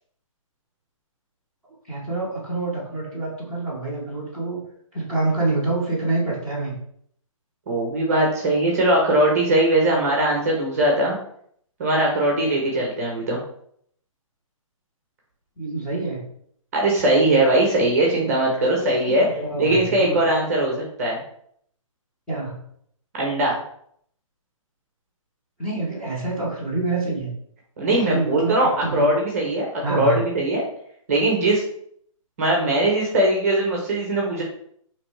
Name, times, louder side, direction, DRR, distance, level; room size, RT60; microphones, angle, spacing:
voice 1, 1.9-4.6 4.9-6.8 15.6-16.3 19.1-20.3 22.3-22.7 25.6-27.3 28.0-29.1 29.8-30.2, right 3 dB, 5° left, -10 dB, 1.0 m, -27 dB
voice 2, 7.7-11.2 11.8-13.4 16.7-21.2 23.1-23.6 27.8-30.6 31.1-31.6 32.4-34.4, right 1 dB, 25° right, -1 dB, 0.9 m, -20 dB
5.1 x 3.2 x 3.1 m, 0.67 s
hypercardioid pair, 175°, 18 cm